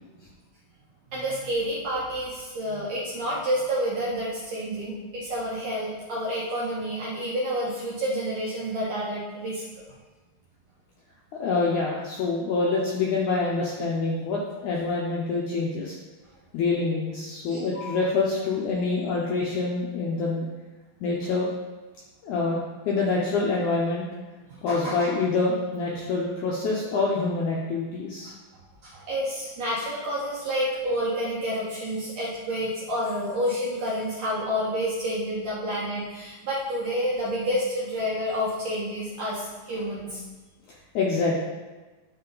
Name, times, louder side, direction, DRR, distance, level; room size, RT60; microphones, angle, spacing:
voice 1, 1.1-9.6 17.4-17.9 24.7-25.1 28.2-28.3 28.8-40.2, equal, 65° right, -6 dB, 1.8 m, -29 dB
voice 2, 11.3-16.0 16.5-20.5 21.0-21.5 22.2-24.0 24.6-28.3 40.9-41.4, left 3 dB, 75° left, -3 dB, 1.8 m, -26 dB
10.0 x 3.7 x 3.9 m, 1.2 s
omnidirectional pair, 4.3 m